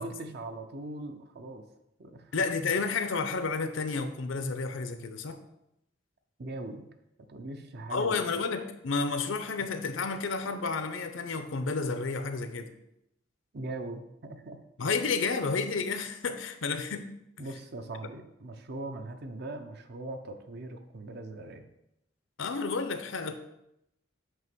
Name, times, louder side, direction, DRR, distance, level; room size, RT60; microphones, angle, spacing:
voice 1, 0.0-1.6 2.0-2.3 2.6-2.7 6.4-6.8 7.3-8.4 13.5-14.6 17.4-21.7, right 2 dB, 55° right, 7 dB, 0.7 m, -40 dB
voice 2, 2.3-5.4 7.9-12.7 14.8-17.1 22.4-23.3, left 4 dB, 80° left, 9 dB, 0.7 m, -31 dB
7.8 x 2.9 x 6.1 m, 0.84 s
head